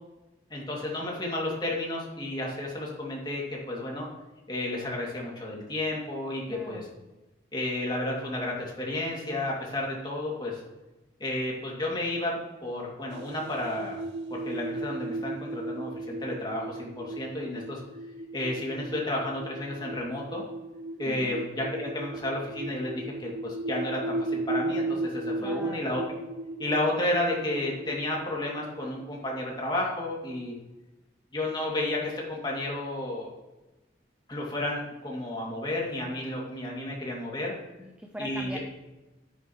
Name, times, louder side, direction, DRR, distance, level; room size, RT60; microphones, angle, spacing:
voice 1, 0.5-4.1 4.5-6.9 7.5-10.6 11.2-14.0 14.3-17.8 18.3-20.4 21.0-26.0 26.6-30.5 31.3-33.3 34.3-37.5 38.2-38.6, left 1 dB, 25° left, -3 dB, 2.5 m, -32 dB
voice 2, 6.5-6.9 21.1-21.4 25.4-25.9 37.8-38.6, equal, 5° right, 2 dB, 0.7 m, -41 dB
sound 1, 13.1-29.4, right 2 dB, 85° right, 0.7 m, -36 dB
9.9 x 9.8 x 3.1 m, 1.1 s
head